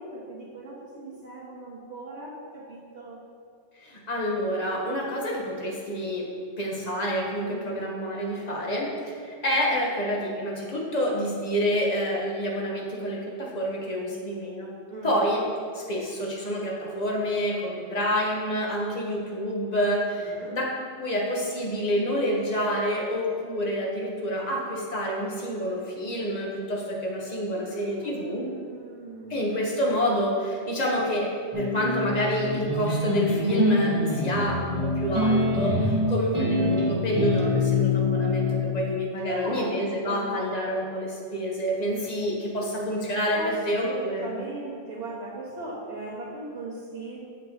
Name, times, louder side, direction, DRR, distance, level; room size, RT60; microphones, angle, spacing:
voice 1, 0.0-3.2 7.4-7.9 9.6-9.8 14.9-15.2 20.1-20.6 27.5-29.6 39.3-40.4 43.3-43.5 43.8-47.2, right 2 dB, 80° right, -9 dB, 1.8 m, -39 dB
voice 2, 3.8-6.3 6.6-14.7 15.0-15.4 15.7-20.7 21.0-28.5 29.3-31.3 31.5-44.4, equal, 35° left, -2 dB, 1.3 m, -28 dB
sound 1, 31.5-38.6, left 2 dB, 25° right, 1.4 m, -25 dB
7.1 x 5.9 x 3.8 m, 2.2 s
omnidirectional pair, 1.2 m